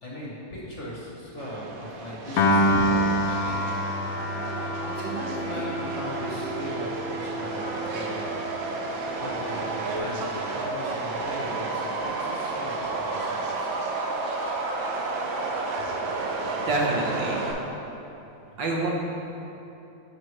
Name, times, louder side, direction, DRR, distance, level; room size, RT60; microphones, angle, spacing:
voice 1, 0.0-13.7, left 1 dB, 45° left, -5 dB, 1.2 m, -38 dB
Subway metro underground, 1.4-17.5, right 3 dB, 90° right, 1.6 m, -31 dB
Piano, 2.4-8.8, left 1 dB, 70° left, 0.9 m, -27 dB
voice 2, 16.7-17.4 18.6-18.9, right 2 dB, 70° right, -1 dB, 1.6 m, -26 dB
9.9 x 5.7 x 3.3 m, 2.9 s
omnidirectional pair, 2.1 m